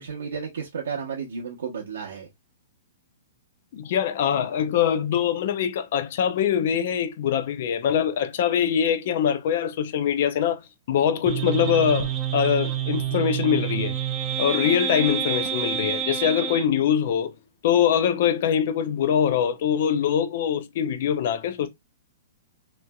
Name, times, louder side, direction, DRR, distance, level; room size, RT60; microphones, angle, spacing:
voice 1, 0.0-2.3, right 6 dB, 85° right, 0.8 m, -33 dB
voice 2, 3.7-10.6 10.9-14.0 14.4-17.3 17.6-21.7, left 9 dB, 55° left, 0.5 m, -23 dB
sound 1, 11.3-16.7, right 9 dB, 20° right, 0.5 m, -28 dB
3.1 x 2.6 x 2.2 m
hypercardioid pair, 150°, 0 cm